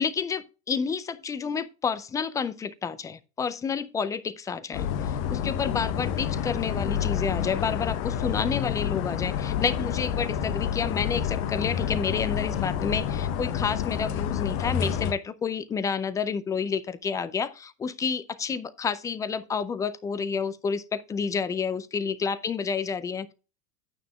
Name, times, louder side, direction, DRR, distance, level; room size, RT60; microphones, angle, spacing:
voice 1, 0.0-23.3, left 6 dB, 10° left, 0.3 m, -30 dB
sound 1, 4.7-15.1, left 9 dB, 40° left, 1.0 m, -28 dB
11.5 x 9.2 x 2.3 m
figure-of-eight pair, 90°, 42 cm